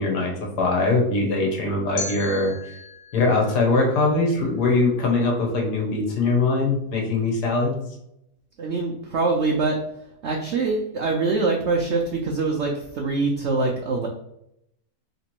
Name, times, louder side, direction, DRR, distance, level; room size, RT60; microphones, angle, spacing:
voice 1, 0.0-2.5 3.1-7.8, left 3 dB, 70° left, 0 dB, 1.5 m, -22 dB
sound 1, 2.0-4.9, left 3 dB, 85° left, 1.4 m, -38 dB
voice 2, 8.6-9.8 10.2-14.1, right 3 dB, 80° right, 0 dB, 0.6 m, -24 dB
3.3 x 3.0 x 4.3 m, 0.80 s
omnidirectional pair, 1.8 m